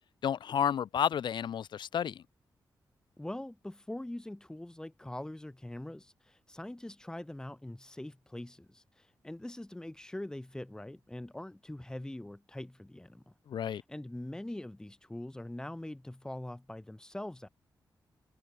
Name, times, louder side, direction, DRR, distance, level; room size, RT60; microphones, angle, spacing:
voice 1, 0.2-2.2 13.5-13.8, left 8 dB, 80° left, 2.1 m, -31 dB
voice 2, 3.2-13.3 13.6-17.5, left 1 dB, 10° left, 5.3 m, -43 dB
wide cardioid pair, 140°, 8 cm